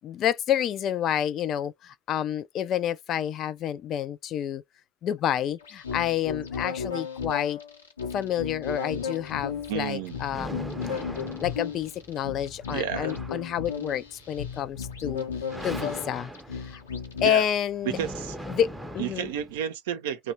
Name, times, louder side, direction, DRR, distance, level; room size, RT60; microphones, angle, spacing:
voice 1, 0.0-4.6 5.0-7.6 8.1-10.7 10.9-11.1 11.4-15.2 15.6-16.8 17.2-18.0 18.5-19.3, left 10 dB, 45° left, 0.3 m, -29 dB
sound 1, 5.6-17.3, left 6 dB, 85° left, 0.7 m, -35 dB
sound 2, 9.2-19.6, equal, 5° right, 0.6 m, -41 dB
voice 2, 9.7-10.2 12.7-13.2 17.2-17.4 17.8-18.4 19.0-20.3, right 9 dB, 70° right, 0.5 m, -31 dB
2.8 x 2.2 x 2.7 m
hypercardioid pair, 70°, 0 cm